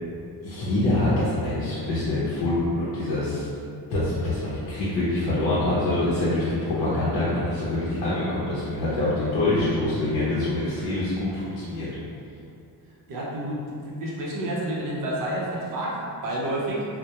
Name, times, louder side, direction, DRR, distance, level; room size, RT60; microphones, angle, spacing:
voice 1, 0.4-3.4 3.9-11.9, left 2 dB, 65° left, -10 dB, 0.6 m, -25 dB
voice 2, 13.1-16.9, right 1 dB, 50° right, -4 dB, 0.6 m, -29 dB
2.2 x 2.1 x 2.8 m, 2.5 s
cardioid pair, 155°, 42 cm